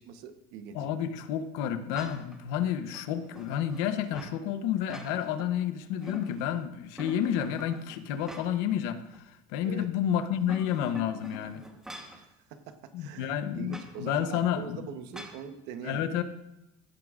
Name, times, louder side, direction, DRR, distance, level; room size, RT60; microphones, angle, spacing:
voice 1, 0.0-0.9 9.6-9.9 12.1-16.0, right 7 dB, 70° right, 8 dB, 1.0 m, -43 dB
voice 2, 0.7-11.6 12.9-14.9 15.8-16.2, left 9 dB, 80° left, 10 dB, 0.9 m, -30 dB
sound 1, 1.9-2.4 2.9-4.4 4.7-5.5 5.8-6.6 7.0-8.7 9.1-9.2 10.2-12.2 13.7-13.9 15.1-15.4, equal, 5° right, 1.1 m, -45 dB
16.0 x 9.4 x 2.5 m, 0.91 s
cardioid pair, 155°, 18 cm